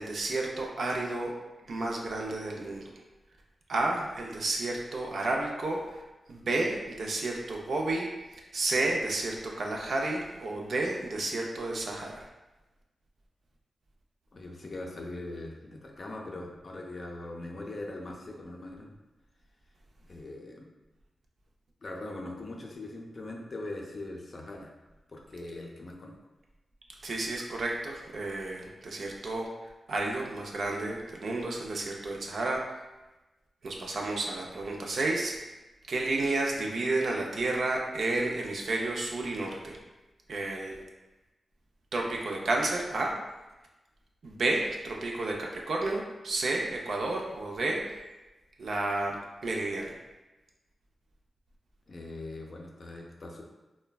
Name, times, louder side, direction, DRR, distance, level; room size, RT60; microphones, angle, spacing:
voice 1, 0.0-1.3 1.7-2.8 3.7-5.8 6.3-8.1 8.5-12.2 27.0-29.5 29.9-32.6 33.6-35.3 35.9-39.8 40.3-40.8 41.9-43.1 44.2-47.9 48.6-49.2 49.4-49.9, right 2 dB, 70° right, 0 dB, 0.4 m, -31 dB
voice 2, 14.3-18.9 20.0-20.7 21.8-24.7 25.1-26.1 51.9-53.4, left 2 dB, 50° left, 0 dB, 0.4 m, -41 dB
3.1 x 2.1 x 2.3 m, 1.1 s
cardioid pair, 75°, 0 cm